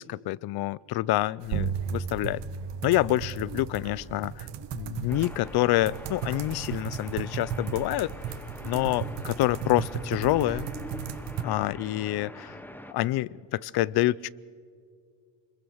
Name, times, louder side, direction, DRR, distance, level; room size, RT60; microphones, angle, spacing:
voice 1, 0.0-2.4 2.8-4.5 4.7-8.1 8.7-10.7 11.4-12.6 12.9-14.3, left 16 dB, 55° left, 24 dB, 0.5 m, -27 dB
sound 1, 1.4-11.4, right 8 dB, 60° right, 1.4 m, -37 dB
sound 2, 1.5-6.6, right 6 dB, 80° right, 2.0 m, -37 dB
sound 3, 5.1-12.9, left 1 dB, 5° left, 0.9 m, -44 dB
25.5 x 22.0 x 6.3 m, 2.1 s
cardioid pair, 140°, 47 cm